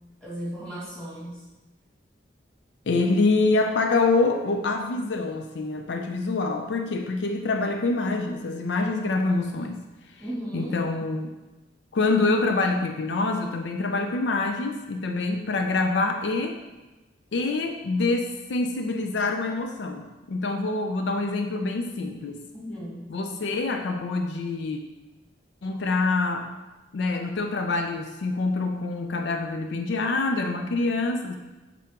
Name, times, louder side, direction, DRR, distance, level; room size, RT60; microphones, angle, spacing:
voice 1, 0.2-1.4 10.2-10.7 22.5-23.0, equal, 5° left, -8 dB, 2.0 m, -35 dB
voice 2, 2.9-9.8 10.1-10.2 10.5-11.3 11.9-16.6 17.3-20.0 20.3-22.4 23.1-24.8 25.6-26.5 26.9-31.4, left 3 dB, 70° left, 4 dB, 0.4 m, -26 dB
7.5 x 3.7 x 3.6 m, 1.1 s
head